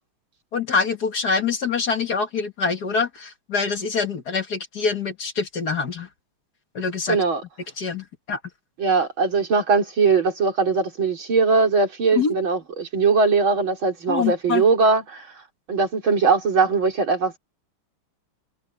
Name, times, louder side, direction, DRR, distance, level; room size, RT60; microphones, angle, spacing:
voice 1, 0.5-6.1 6.7-7.2 7.8-8.4 12.2-12.3 14.1-14.6, left 5 dB, 50° left, 2.0 m, -25 dB
voice 2, 7.1-7.4 8.8-15.3 15.7-17.4, right 4 dB, 70° right, 4.4 m, -20 dB
omnidirectional pair, 2.3 m